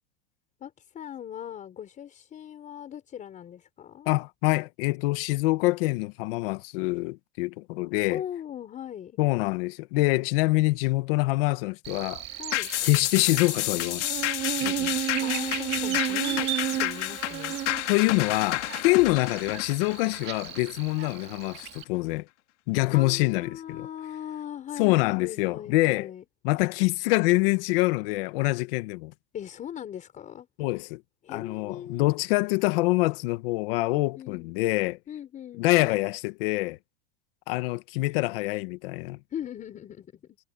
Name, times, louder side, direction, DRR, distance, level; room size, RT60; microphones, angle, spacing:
voice 1, 0.6-4.1 8.1-9.2 12.4-12.7 15.2-17.6 22.9-26.2 29.3-30.5 31.2-32.1 34.2-34.5 35.1-35.7 39.3-40.4, left 10 dB, 20° left, 5.4 m, -39 dB
voice 2, 4.1-8.2 9.2-12.2 12.8-14.0 14.6-15.0 17.9-22.2 22.7-23.9 24.8-26.1 26.4-29.1 30.6-31.0 31.3-35.0 35.6-36.8 37.5-39.2, left 21 dB, 50° left, 1.2 m, -25 dB
Buzz, 11.8-21.8, right 13 dB, 25° right, 2.1 m, -33 dB
sound 1, 12.5-21.2 21.6-21.7, left 18 dB, 70° left, 1.9 m, -31 dB
supercardioid pair, 170°, 37 cm